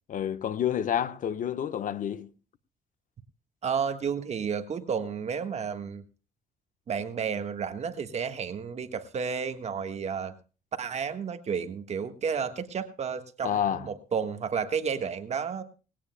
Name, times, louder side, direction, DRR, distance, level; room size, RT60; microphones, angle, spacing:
voice 1, 0.1-2.3 13.4-13.9, left 9 dB, 50° left, 1.1 m, -29 dB
voice 2, 3.6-6.0 6.9-10.3 10.8-15.6, right 6 dB, 40° right, 1.4 m, -31 dB
20.0 x 17.0 x 2.2 m
cardioid pair, 110°, 17 cm